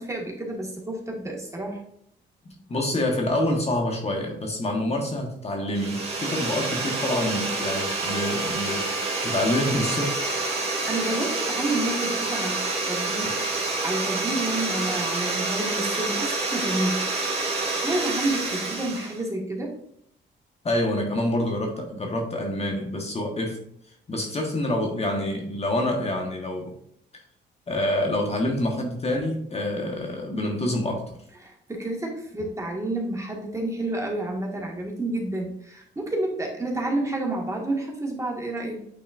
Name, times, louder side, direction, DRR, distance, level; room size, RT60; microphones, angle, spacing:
voice 1, 0.0-1.8 10.9-12.6 12.9-19.7 31.4-38.8, right 2 dB, 15° right, -1 dB, 1.7 m, -30 dB
voice 2, 2.7-10.2 20.6-23.6 24.1-26.7 27.7-31.1, left 1 dB, 30° left, 2 dB, 1.3 m, -27 dB
sound 1, 5.7-19.2, right 3 dB, 30° right, 2.1 m, -28 dB
9.0 x 4.2 x 2.5 m, 0.69 s
cardioid pair, 90°, 20 cm